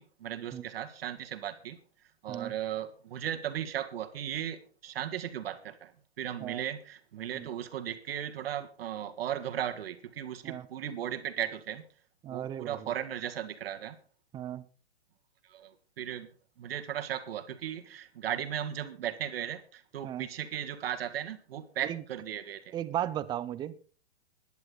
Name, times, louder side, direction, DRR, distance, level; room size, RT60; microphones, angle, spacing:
voice 1, 0.0-1.8 2.2-5.9 6.2-11.8 12.3-14.0 15.5-16.3 16.6-22.7, right 10 dB, 60° right, 8 dB, 1.8 m, -36 dB
voice 2, 12.2-12.9 14.3-14.6 20.0-20.3 21.8-22.0 22.7-23.7, right 11 dB, 15° right, 15 dB, 0.5 m, -36 dB
17.0 x 10.5 x 3.9 m, 0.40 s
hypercardioid pair, 135°, 33 cm